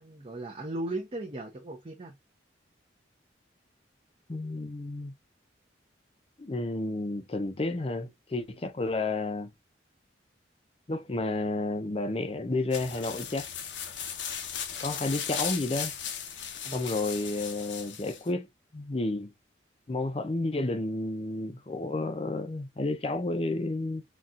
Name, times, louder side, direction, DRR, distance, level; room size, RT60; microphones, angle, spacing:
voice 1, 0.0-2.2 16.6-16.9, right 2 dB, 30° right, 0.5 m, -37 dB
voice 2, 4.3-5.1 6.4-9.5 10.9-13.5 14.8-15.9 16.7-18.5 18.7-19.3 19.9-24.0, left 2 dB, 30° left, 0.5 m, -31 dB
sound 1, 12.7-18.3, left 8 dB, 70° left, 0.7 m, -37 dB
4.1 x 2.3 x 2.3 m
head